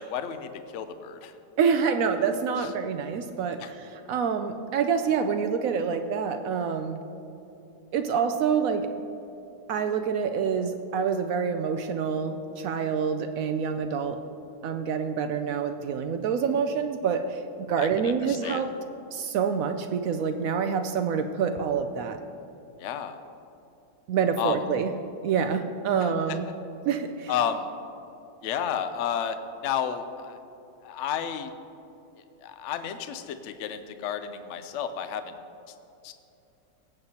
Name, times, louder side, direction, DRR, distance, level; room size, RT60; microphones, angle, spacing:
voice 1, 0.0-1.3 2.6-2.7 3.6-3.7 17.8-18.6 22.8-23.2 24.4-24.6 26.0-26.4 27.3-27.7 28.4-29.4 29.6-30.4 30.8-31.5 32.4-35.3 36.0-36.1, left 8 dB, 70° left, 9 dB, 0.7 m, -32 dB
voice 2, 1.6-7.0 7.9-8.9 9.7-14.2 14.6-18.7 19.1-22.2 24.1-24.9 25.2-26.5 26.9-27.3, right 6 dB, 75° right, 7 dB, 0.8 m, -27 dB
18.0 x 7.9 x 2.8 m, 2.8 s
omnidirectional pair, 1.9 m